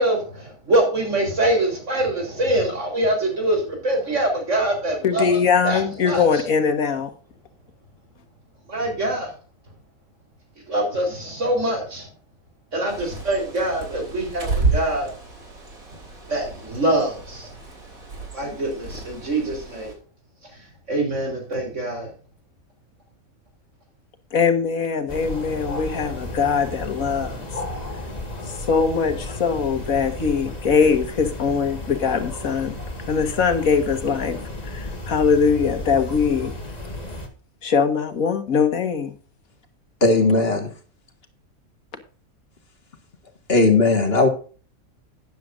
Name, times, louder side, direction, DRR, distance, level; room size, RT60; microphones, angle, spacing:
voice 1, 0.0-5.4 5.6-6.2 8.7-9.3 10.7-12.1 12.7-15.1 16.3-17.5 18.3-19.9 20.5-22.1, right 1 dB, 55° right, 2 dB, 4.5 m, -24 dB
voice 2, 5.0-7.1 24.3-27.4 28.5-32.8 33.1-36.5 37.6-39.1, left 6 dB, 75° left, 6 dB, 1.9 m, -21 dB
Bird, 12.9-19.9, right 3 dB, 80° right, 3.7 m, -31 dB
sound 1, 25.1-37.3, left 1 dB, 30° left, 1.9 m, -33 dB
voice 3, 40.0-40.7 43.5-44.3, left 3 dB, 45° left, 5 dB, 2.0 m, -17 dB
12.5 x 10.5 x 2.6 m, 0.38 s
omnidirectional pair, 1.5 m